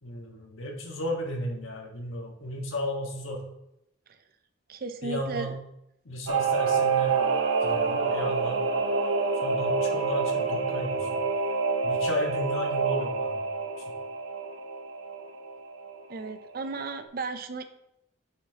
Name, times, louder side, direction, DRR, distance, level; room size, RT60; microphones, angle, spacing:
voice 1, 0.0-3.4 5.0-5.5 6.0-7.2 7.6-8.7 9.4-11.2 11.8-13.4 13.8-13.9, left 1 dB, 85° left, 0 dB, 1.5 m, -34 dB
voice 2, 4.7-5.6 16.1-17.6, right 3 dB, 45° right, 8 dB, 0.5 m, -35 dB
Singing / Musical instrument, 6.3-16.3 16.6-16.7, right 4 dB, 85° right, 1.1 m, -27 dB
10.0 x 5.8 x 2.9 m, 0.81 s
head